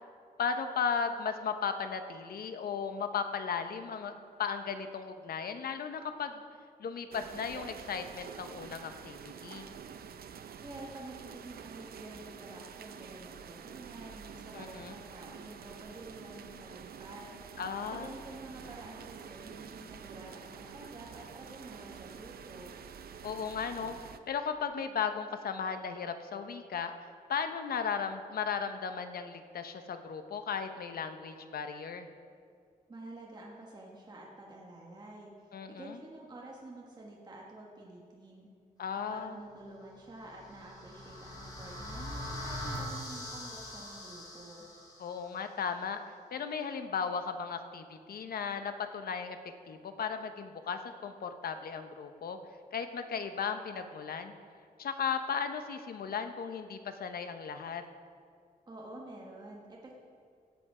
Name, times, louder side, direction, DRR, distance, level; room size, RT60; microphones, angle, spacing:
voice 1, 0.4-6.4 6.8-9.7 14.5-14.9 17.6-18.1 23.2-24.0 24.3-26.9 27.3-32.1 35.5-36.0 38.8-39.3 45.0-46.0 46.3-49.4 49.7-52.4 52.7-54.3 54.8-57.8, left 6 dB, 80° left, 8 dB, 0.8 m, -36 dB
sound 1, 7.1-24.2, right 7 dB, 85° right, 0.6 m, -48 dB
voice 2, 10.6-17.4 17.9-22.7 32.9-38.5 39.1-44.7 58.7-60.0, right 1 dB, 25° right, -3 dB, 1.3 m, -49 dB
sound 2, 40.1-45.2, left 1 dB, 25° left, 3.1 m, -42 dB
16.5 x 7.9 x 4.9 m, 2.3 s
wide cardioid pair, 165°, 15 cm